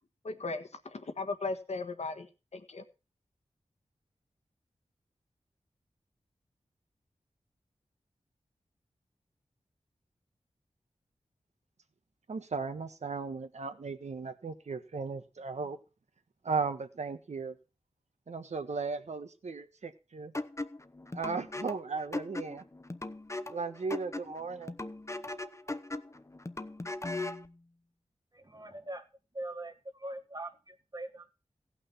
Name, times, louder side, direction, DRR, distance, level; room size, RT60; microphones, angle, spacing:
voice 1, 0.2-2.8, left 3 dB, 65° left, 1.5 m, -37 dB
voice 2, 12.3-15.8 16.4-17.6 18.3-20.3 21.1-22.6 23.5-24.7, right 4 dB, 70° right, 1.4 m, -36 dB
sound 1, 20.3-27.5, left 2 dB, 25° left, 0.9 m, -39 dB
voice 3, 28.3-29.1 29.3-31.3, right 1 dB, 35° right, 1.7 m, -42 dB
16.0 x 6.1 x 5.8 m
wide cardioid pair, 55°, 12 cm